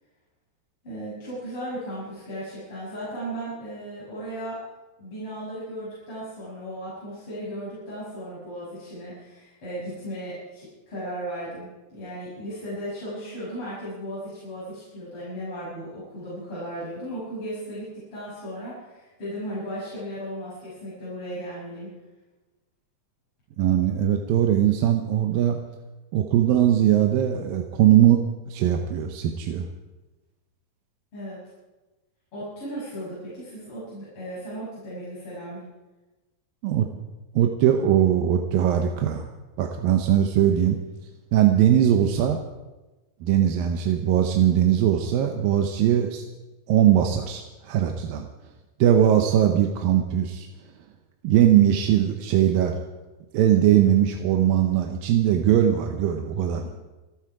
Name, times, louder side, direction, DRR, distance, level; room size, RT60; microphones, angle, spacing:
voice 1, 0.8-4.6 5.0-21.9 31.1-31.4 32.3-35.6, equal, 35° left, -9 dB, 7.1 m, -36 dB
voice 2, 23.6-25.6 26.1-29.7 36.6-36.9 37.4-39.3 39.6-40.8 41.3-42.4 43.2-46.3 46.7-48.3 48.8-50.5 51.2-52.8 53.3-56.6, right 10 dB, 80° right, 4 dB, 2.7 m, -20 dB
27.0 x 9.7 x 4.8 m, 1.1 s
omnidirectional pair, 4.1 m